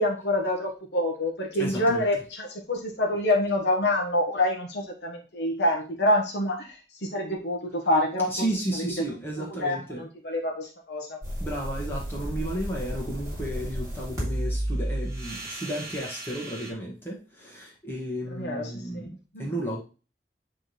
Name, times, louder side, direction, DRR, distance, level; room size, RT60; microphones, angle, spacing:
voice 1, 0.0-8.4 8.7-8.9 9.6-11.2 18.3-19.5, left 1 dB, 80° left, -1 dB, 1.4 m, -27 dB
voice 2, 1.6-2.0 8.3-10.0 11.4-19.1 19.4-19.8, right 1 dB, 15° left, -4 dB, 1.8 m, -33 dB
sound 1, 11.2-16.7, right 1 dB, 20° right, 3.2 m, -32 dB
10.0 x 3.7 x 3.2 m, 0.33 s
head